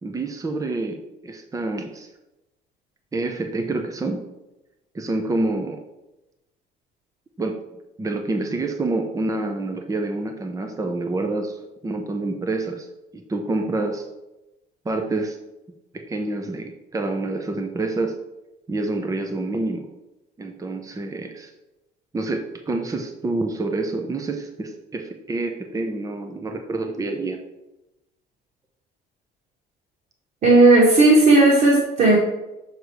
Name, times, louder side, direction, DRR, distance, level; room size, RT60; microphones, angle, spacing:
voice 1, 0.0-2.1 3.1-4.2 4.9-5.8 7.4-7.6 8.0-12.9 13.1-14.1 14.8-15.4 15.9-18.1 18.7-19.9 20.4-21.5 22.1-27.4, right 2 dB, 20° right, 4 dB, 0.8 m, -27 dB
voice 2, 30.4-32.2, right 2 dB, 50° right, -5 dB, 2.2 m, -14 dB
6.7 x 4.5 x 4.8 m, 0.97 s
cardioid pair, 110°, 17 cm